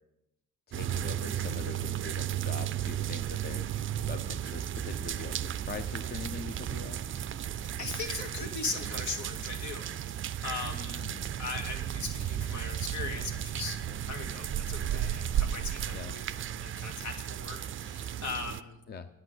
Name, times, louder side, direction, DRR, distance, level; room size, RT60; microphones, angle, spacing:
voice 1, 0.7-3.6 4.1-7.0 11.0-11.3 15.9-16.1 18.9-19.1, left 5 dB, 35° left, 8 dB, 0.7 m, -42 dB
sound 1, 0.7-18.6, right 10 dB, 45° right, 0.4 m, -34 dB
voice 2, 7.8-11.1 11.4-18.8, left 4 dB, 70° left, 3 dB, 2.2 m, -39 dB
9.5 x 8.1 x 7.9 m, 0.88 s
cardioid pair, 90°, 30 cm